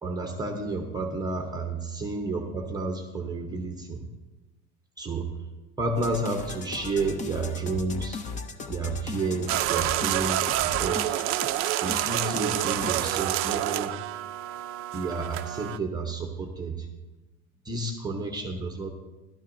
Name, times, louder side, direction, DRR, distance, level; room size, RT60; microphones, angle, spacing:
voice 1, 0.0-4.0 5.0-5.3 5.8-8.2 8.7-11.2 11.8-14.0 14.9-16.9 17.7-18.9, right 3 dB, 15° right, 3 dB, 0.8 m, -31 dB
sound 1, 6.0-13.1, left 4 dB, 25° left, 0.5 m, -38 dB
sound 2, 9.5-15.8, right 14 dB, 45° right, 0.4 m, -28 dB
14.5 x 12.5 x 2.6 m, 1.2 s
cardioid pair, 165°, 31 cm